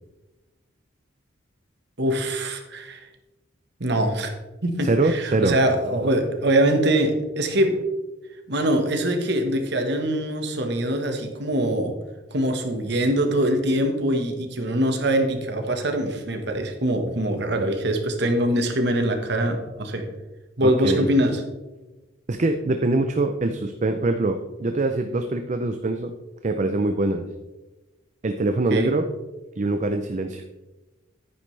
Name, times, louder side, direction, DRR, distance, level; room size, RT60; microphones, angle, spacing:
voice 1, 2.0-3.0 3.8-4.3 4.6-7.7 8.5-11.9 12.3-20.1 20.6-21.4 28.7-28.9, right 1 dB, 60° right, 5 dB, 1.4 m, -23 dB
voice 2, 4.8-5.6 20.6-21.1 22.3-26.1 26.4-27.2 28.2-29.1 29.6-30.4, right 2 dB, 40° right, 6 dB, 0.5 m, -23 dB
10.5 x 9.4 x 3.3 m, 1.1 s
head